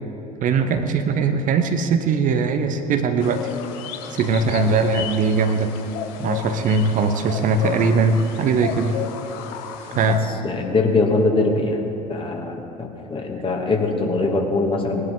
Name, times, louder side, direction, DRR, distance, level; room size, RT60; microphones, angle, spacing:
voice 1, 0.4-3.5 4.1-5.7 6.2-9.0 9.9-10.2, right 4 dB, 45° right, 7 dB, 1.0 m, -20 dB
sound 1, 3.2-10.2, left 8 dB, 60° left, 1.1 m, -33 dB
voice 2, 10.4-11.8 12.1-15.0, left 3 dB, 25° left, 1 dB, 2.2 m, -22 dB
19.5 x 11.0 x 4.0 m, 2.9 s
figure-of-eight pair, 65°, 19 cm